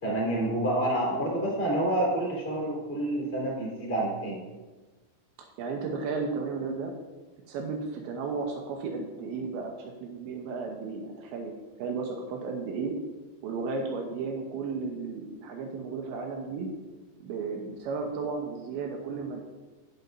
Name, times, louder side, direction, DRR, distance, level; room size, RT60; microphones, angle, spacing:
voice 1, 0.0-4.4, right 1 dB, 15° left, -4 dB, 3.1 m, -28 dB
voice 2, 5.6-6.9 7.5-11.5 11.8-12.9 13.4-16.7 17.2-19.4, right 4 dB, 80° right, 1 dB, 3.1 m, -34 dB
18.5 x 6.7 x 2.7 m, 1.2 s
omnidirectional pair, 5.4 m